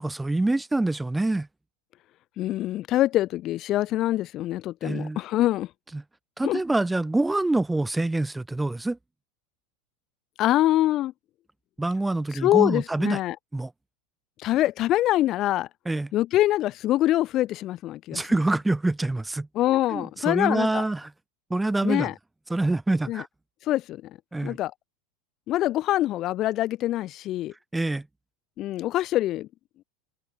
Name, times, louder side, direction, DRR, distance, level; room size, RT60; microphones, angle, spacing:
voice 1, 0.0-1.5 4.8-5.2 5.9-6.0 6.4-9.0 11.8-13.2 13.5-13.7 15.9-16.1 18.1-19.5 19.9-21.1 21.5-22.1 22.5-23.3 24.3-24.6 27.7-28.1, right 2 dB, 10° right, 0.5 m, -26 dB
voice 2, 2.4-5.7 6.4-6.6 10.4-11.1 12.3-13.4 14.4-15.7 16.1-18.3 19.5-20.8 21.8-22.1 23.1-23.2 23.6-24.0 24.4-24.7 25.5-27.5 28.6-29.5, left 14 dB, 40° left, 0.3 m, -24 dB
figure-of-eight pair, 80°, 0 cm